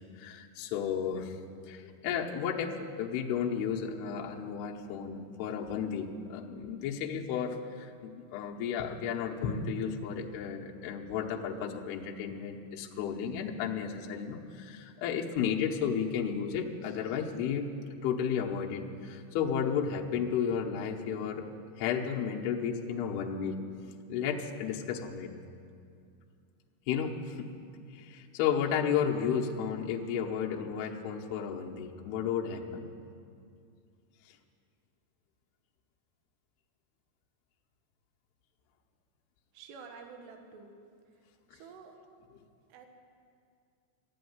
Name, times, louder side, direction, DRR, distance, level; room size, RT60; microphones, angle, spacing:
voice 1, 0.0-17.7 18.0-21.5 21.8-23.6 24.1-25.3 26.9-27.5 27.9-32.9, left 7 dB, 75° left, 0 dB, 2.9 m, -33 dB
voice 2, 39.5-40.7 41.5-41.9 42.7-42.9, right 5 dB, 75° right, 4 dB, 3.3 m, -49 dB
13.5 x 9.5 x 9.5 m, 2.3 s
omnidirectional pair, 5.0 m